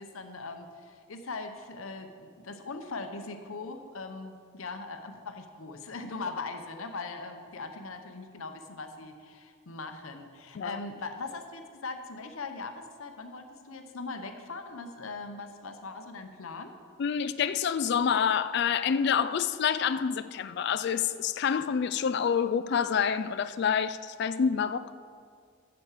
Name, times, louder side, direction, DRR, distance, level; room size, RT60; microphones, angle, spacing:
voice 1, 0.0-16.8, left 3 dB, 70° left, 0.8 m, -40 dB
voice 2, 17.0-24.9, left 7 dB, 50° left, 0.3 m, -27 dB
8.2 x 6.9 x 7.3 m
head